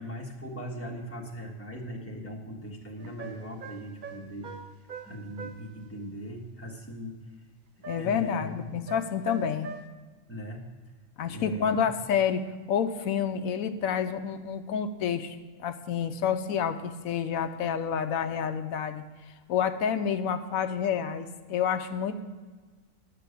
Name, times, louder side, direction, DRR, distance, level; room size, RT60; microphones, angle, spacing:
voice 1, 0.0-4.6 5.0-7.2 8.0-8.7 10.3-10.7 11.3-11.8, equal, 10° left, -2 dB, 1.8 m, -39 dB
sound 1, 3.0-5.7 7.8-8.3 8.9-9.9, right 5 dB, 45° right, 0.8 m, -43 dB
voice 2, 7.9-9.7 11.2-19.0 19.5-22.2, left 7 dB, 85° left, 9 dB, 1.1 m, -29 dB
10.5 x 6.9 x 8.2 m, 1.4 s
omnidirectional pair, 1.4 m